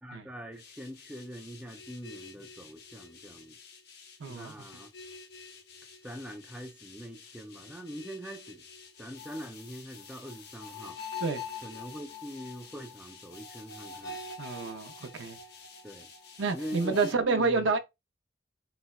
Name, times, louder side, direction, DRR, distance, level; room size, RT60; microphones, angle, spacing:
voice 1, 0.0-3.5 4.3-4.9 6.0-8.6 9.0-11.0 11.6-14.2 15.8-16.1 16.5-17.7, equal, 5° right, 0.4 m, -43 dB
sound 1, 0.6-17.1, left 4 dB, 55° left, 0.6 m, -46 dB
voice 2, 4.2-4.5 11.2-11.4 14.4-15.4 16.4-17.8, right 4 dB, 70° right, 0.5 m, -29 dB
4.0 x 2.1 x 2.3 m
head